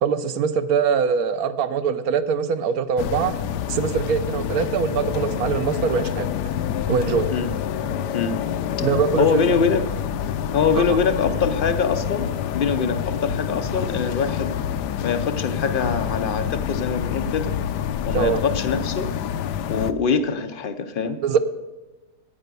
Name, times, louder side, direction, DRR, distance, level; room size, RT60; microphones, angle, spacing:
voice 1, 0.0-3.3 3.7-6.3 6.9-7.3 8.8-9.4 10.8-10.9 18.1-18.4 21.2-21.4, right 6 dB, 70° right, 12 dB, 1.0 m, -22 dB
sound 1, 3.0-19.9, left 9 dB, 80° left, 1.2 m, -27 dB
voice 2, 9.2-9.8 10.5-12.3 12.5-14.5 15.0-17.5 18.1-19.1 19.7-21.2, left 5 dB, 60° left, 9 dB, 0.5 m, -23 dB
9.5 x 8.9 x 6.7 m, 1.1 s
omnidirectional pair, 1.8 m